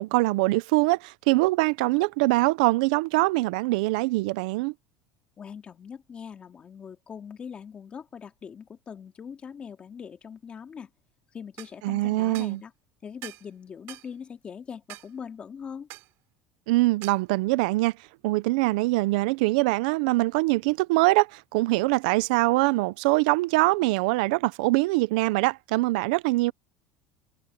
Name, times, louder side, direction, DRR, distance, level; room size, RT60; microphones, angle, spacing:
voice 1, 0.0-4.7 11.8-12.6 16.7-17.9 18.2-26.5, right 22 dB, 85° right, 0.6 m, -23 dB
voice 2, 5.4-10.9 11.3-12.7 13.0-15.9, left 7 dB, 25° left, 2.6 m, -41 dB
sound 1, 11.6-11.8 12.3-12.6 13.2-13.5 13.9-14.1 14.9-15.1 15.9-16.1 17.0-17.2, right 20 dB, 65° right, 3.8 m, -43 dB
cardioid pair, 140°, 4 cm